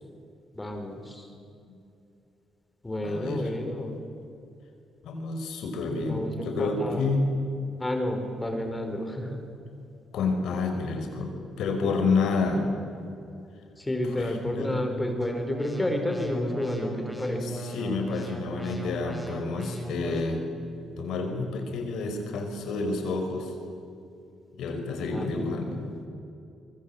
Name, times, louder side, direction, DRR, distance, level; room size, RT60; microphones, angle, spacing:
voice 1, 0.5-1.3 2.8-4.0 6.0-7.1 7.8-9.4 13.8-17.6 25.1-25.6, left 1 dB, 15° left, 5 dB, 4.7 m, -30 dB
voice 2, 3.0-3.5 5.0-7.3 10.1-11.3 11.6-12.7 14.0-15.0 17.4-20.4 21.0-23.5 24.6-25.8, left 3 dB, 80° left, 4 dB, 5.7 m, -29 dB
sound 1, 15.2-20.2, right 1 dB, 5° right, 6.1 m, -37 dB
24.5 x 24.0 x 8.9 m, 2.6 s
cardioid pair, 90°, 0 cm